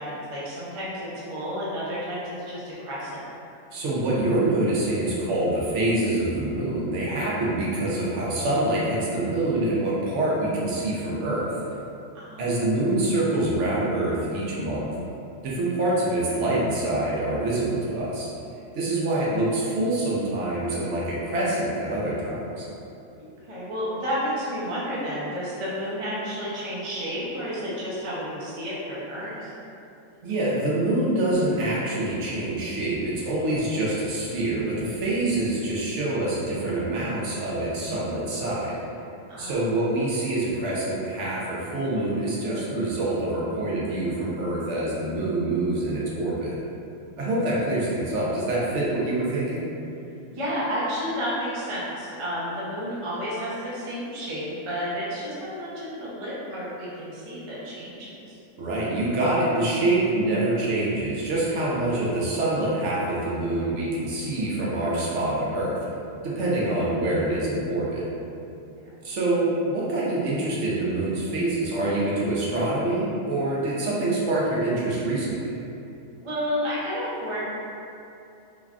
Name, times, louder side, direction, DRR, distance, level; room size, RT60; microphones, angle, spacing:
voice 1, 0.0-3.3 12.1-12.5 23.2-29.5 39.3-39.6 50.3-58.4 68.6-68.7 76.2-77.5, equal, 40° right, -8 dB, 0.4 m, -31 dB
voice 2, 3.7-11.5 12.4-14.9 15.4-18.3 18.7-22.7 30.2-38.8 39.4-46.6 47.2-49.6 58.6-65.8 66.2-68.0 69.0-75.5, right 2 dB, 70° right, -6 dB, 0.8 m, -25 dB
3.2 x 2.3 x 2.4 m, 2.7 s
omnidirectional pair, 1.4 m